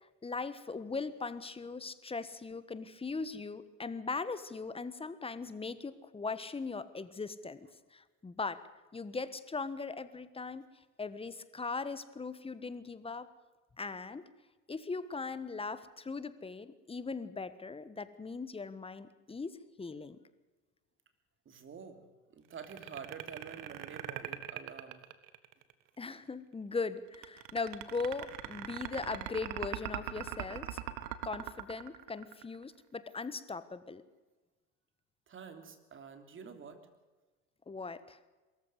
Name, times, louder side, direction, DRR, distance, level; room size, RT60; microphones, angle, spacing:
voice 1, 0.0-8.6 8.9-10.6 11.0-13.3 13.8-14.2 14.7-20.2 26.0-30.8 31.2-34.0 37.7-38.2, left 4 dB, 15° left, 14 dB, 1.3 m, -39 dB
voice 2, 21.4-25.0 35.3-36.8, right 6 dB, 35° right, 8 dB, 3.3 m, -48 dB
sound 1, 22.5-25.7 27.1-32.6, right 14 dB, 60° right, 1.8 m, -40 dB
23.0 x 14.5 x 8.1 m, 1.2 s
supercardioid pair, 100°, 37 cm